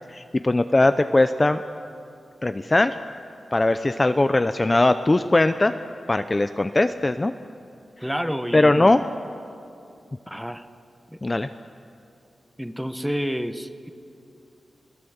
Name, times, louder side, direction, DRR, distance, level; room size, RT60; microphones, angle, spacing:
voice 1, 0.1-1.6 2.4-3.0 3.5-5.7 6.1-7.3 8.5-9.0 11.2-11.5, left 2 dB, 25° left, 9 dB, 0.6 m, -20 dB
voice 2, 8.0-9.0 10.3-10.7 11.1-11.2 12.6-13.9, equal, ahead, 10 dB, 1.0 m, -29 dB
29.0 x 17.0 x 8.0 m, 2.7 s
wide cardioid pair, 110°, 0 cm